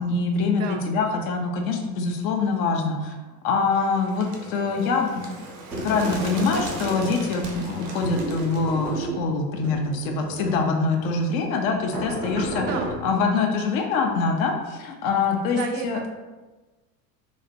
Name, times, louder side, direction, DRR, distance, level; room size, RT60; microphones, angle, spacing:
voice 1, 0.0-3.2 3.4-12.7 13.0-16.0, left 4 dB, 55° left, 3 dB, 0.6 m, -24 dB
voice 2, 0.5-0.9 12.6-12.9 15.5-16.1, right 5 dB, 35° right, 4 dB, 0.4 m, -32 dB
Bird, 3.7-9.0, right 3 dB, 65° right, 0.8 m, -39 dB
sound 1, 5.7-7.4 8.0-9.2 9.6-10.6 11.0-11.2 11.9-13.0, right 1 dB, 90° right, 1.0 m, -32 dB
3.9 x 2.1 x 2.6 m, 1.2 s
figure-of-eight pair, 80°, 50 cm